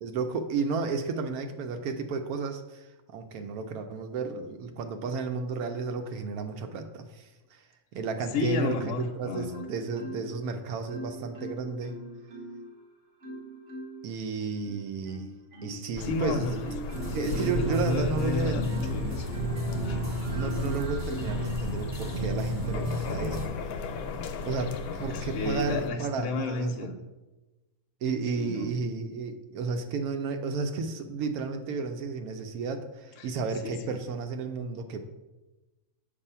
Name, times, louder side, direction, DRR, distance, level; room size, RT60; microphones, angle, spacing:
voice 1, 0.0-2.9 3.1-7.6 7.9-11.9 14.0-15.3 15.6-16.5 17.1-18.7 20.3-23.5 24.4-26.9 28.0-35.1, right 4 dB, 85° right, 6 dB, 1.1 m, -32 dB
voice 2, 8.3-9.7 16.0-19.4 25.1-27.0 28.4-28.7 33.2-33.3 33.6-34.0, left 3 dB, 65° left, 4 dB, 0.9 m, -32 dB
Marimba xylophone, 9.5-10.5 10.9-12.7 13.2-14.1 14.6-20.1 20.6-21.5 22.0-22.3, right 1 dB, 55° right, 1.5 m, -42 dB
sound 1, 16.0-25.9, left 4 dB, 85° left, 1.1 m, -37 dB
sound 2, 16.9-23.5, equal, 40° right, 0.9 m, -32 dB
6.8 x 2.7 x 5.5 m, 1.1 s
omnidirectional pair, 1.5 m